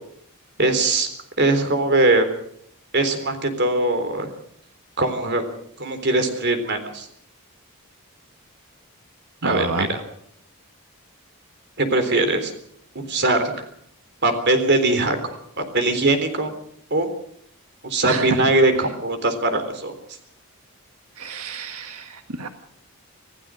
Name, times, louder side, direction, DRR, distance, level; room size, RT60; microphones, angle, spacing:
voice 1, 0.6-1.1 1.4-2.3 2.9-4.3 5.0-5.4 5.8-7.1 9.4-10.0 11.8-12.5 13.0-13.7 14.2-15.2 15.6-16.5 16.9-17.1 17.8-19.9, right 2 dB, 50° right, 8 dB, 3.7 m, -21 dB
voice 2, 9.4-9.9 18.0-18.8 21.1-22.5, right 3 dB, 85° right, 6 dB, 1.7 m, -28 dB
26.5 x 16.0 x 6.4 m, 0.68 s
head